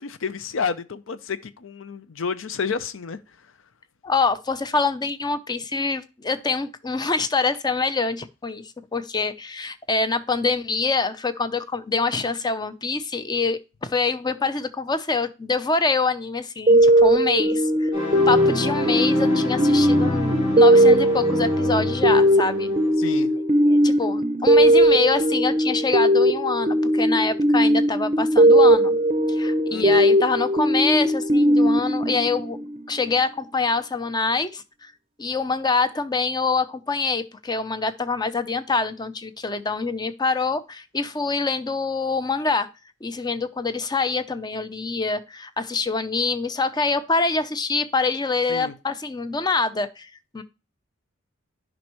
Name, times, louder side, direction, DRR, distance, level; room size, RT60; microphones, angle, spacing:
voice 1, 0.0-3.2 23.0-23.3 29.7-30.1 48.5-48.7, left 5 dB, 70° left, 0.6 m, -30 dB
voice 2, 4.0-17.9 18.3-22.7 23.6-29.0 29.3-32.6 32.9-34.9 35.2-42.7 43.0-50.4, left 4 dB, 20° left, 0.5 m, -25 dB
sound 1, 16.7-33.0, right 1 dB, 30° right, 0.6 m, -18 dB
sound 2, 17.9-22.9, left 2 dB, 35° left, 4.3 m, -28 dB
10.5 x 5.2 x 3.0 m
head